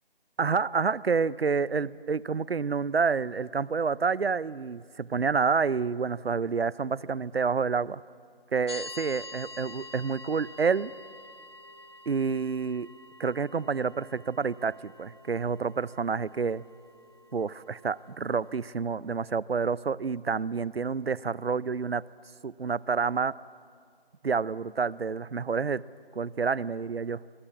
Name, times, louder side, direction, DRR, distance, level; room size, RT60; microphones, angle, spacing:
voice 1, 0.4-8.0 8.5-10.9 12.1-12.9 13.2-16.6 17.3-22.0 22.4-23.3 24.2-25.8 26.2-27.2, right 5 dB, 80° right, 21 dB, 0.7 m, -28 dB
sound 1, 8.7-18.7, left 2 dB, 25° left, 1.2 m, -47 dB
25.5 x 23.0 x 8.4 m, 2.1 s
figure-of-eight pair, 165°, 30 cm